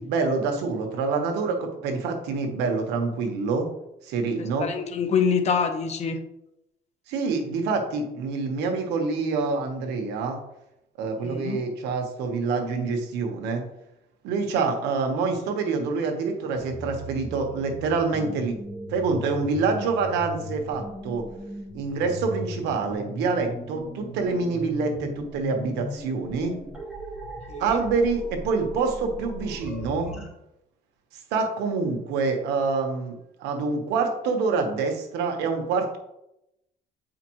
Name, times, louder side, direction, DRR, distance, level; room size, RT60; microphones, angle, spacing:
voice 1, 0.0-3.7 4.0-4.7 7.1-10.4 11.0-13.6 14.2-18.6 18.9-21.3 21.7-26.6 27.6-30.1 31.3-36.0, right 4 dB, 90° right, 4 dB, 1.2 m, -26 dB
voice 2, 4.6-6.2 11.2-11.6 27.5-27.8, left 6 dB, 40° left, 5 dB, 0.9 m, -25 dB
sound 1, 16.5-30.3, equal, 5° right, 2.1 m, -38 dB
8.5 x 4.9 x 3.1 m, 0.87 s
cardioid pair, 110°, 17 cm